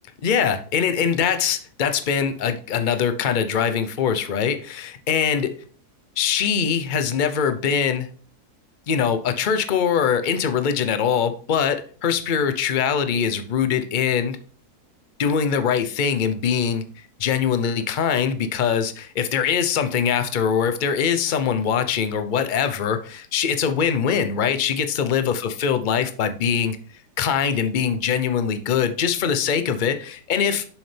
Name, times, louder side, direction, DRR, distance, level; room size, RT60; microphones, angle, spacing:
voice 1, 0.2-5.5 6.2-8.1 8.9-14.4 15.2-16.8 17.2-26.8 27.2-30.6, left 7 dB, 45° left, 10 dB, 0.6 m, -22 dB
7.2 x 6.4 x 3.3 m, 0.43 s
omnidirectional pair, 1.8 m